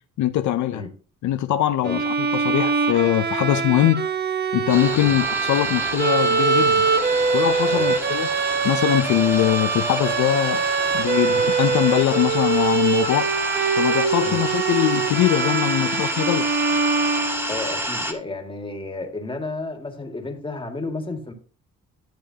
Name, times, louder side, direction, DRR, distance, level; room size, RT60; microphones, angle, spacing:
voice 1, 0.2-0.8 1.2-4.1 4.5-6.9 7.3-8.3 8.6-10.7 10.9-13.3 13.8-16.5, left 13 dB, 70° left, 0.6 m, -22 dB
Bowed string instrument, 1.8-17.8, right 5 dB, 35° right, 1.0 m, -23 dB
sound 1, 4.7-18.1, equal, 5° right, 1.7 m, -30 dB
voice 2, 17.5-21.3, left 2 dB, 15° left, 2.1 m, -32 dB
12.5 x 6.9 x 2.9 m
cardioid pair, 90°, 30 cm